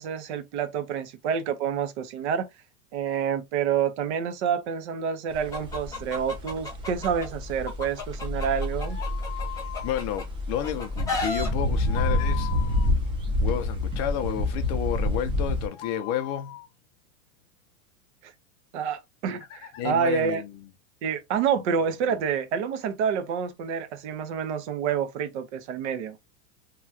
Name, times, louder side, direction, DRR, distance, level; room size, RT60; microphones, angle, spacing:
voice 1, 0.0-2.5 2.9-9.0 18.2-18.3 18.7-20.4 21.0-26.2, right 7 dB, 55° right, 0.8 m, -28 dB
sound 1, 5.3-15.7, left 2 dB, 10° right, 0.6 m, -28 dB
Chicken rooster, 5.5-7.3 7.7-10.2 10.6-11.5, left 3 dB, 10° left, 0.9 m, -33 dB
sound 2, 8.7-10.0 11.5-12.9 15.4-16.7 19.4-19.8, left 16 dB, 55° left, 0.8 m, -40 dB
voice 2, 9.8-12.5 13.4-16.6 19.8-20.6 22.0-22.2, left 10 dB, 35° left, 0.5 m, -31 dB
2.9 x 2.4 x 2.7 m
supercardioid pair, 145°, 42 cm